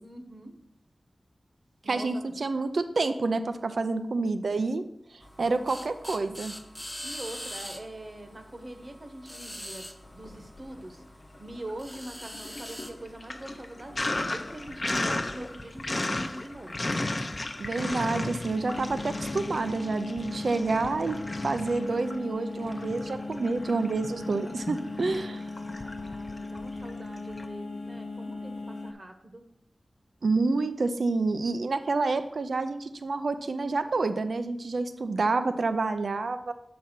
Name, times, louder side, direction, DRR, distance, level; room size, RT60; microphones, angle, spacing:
voice 1, 0.0-0.6 1.8-2.3 7.0-9.9 10.1-11.0 11.4-16.9 26.0-29.5, right 1 dB, 40° right, 5 dB, 1.1 m, -43 dB
voice 2, 1.9-4.8 5.4-6.5 17.6-21.2 21.4-25.4 30.2-36.5, right 3 dB, 80° right, 10 dB, 0.5 m, -28 dB
sound 1, 5.2-19.7, equal, 5° left, 0.7 m, -46 dB
Sink (filling or washing), 10.1-11.0 11.3-27.5, left 2 dB, 35° left, 0.6 m, -35 dB
sound 2, 18.5-28.9, left 3 dB, 85° left, 0.7 m, -38 dB
7.2 x 4.1 x 6.1 m, 0.76 s
wide cardioid pair, 80°, 0 cm